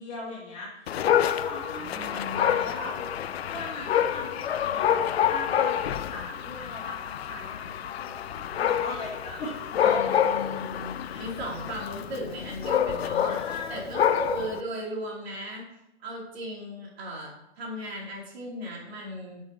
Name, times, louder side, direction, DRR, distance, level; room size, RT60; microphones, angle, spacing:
voice 1, 0.0-4.9 5.3-10.0 11.0-11.3 13.3-14.2, left 2 dB, 15° left, -6 dB, 2.7 m, -39 dB
Dog, 0.9-14.6, left 9 dB, 55° left, 0.5 m, -28 dB
voice 2, 1.9-2.6 9.8-13.3 13.7-15.7 16.0-19.4, equal, 55° right, -2 dB, 3.3 m, -36 dB
11.0 x 6.4 x 3.0 m, 0.87 s
hypercardioid pair, 150°, 37 cm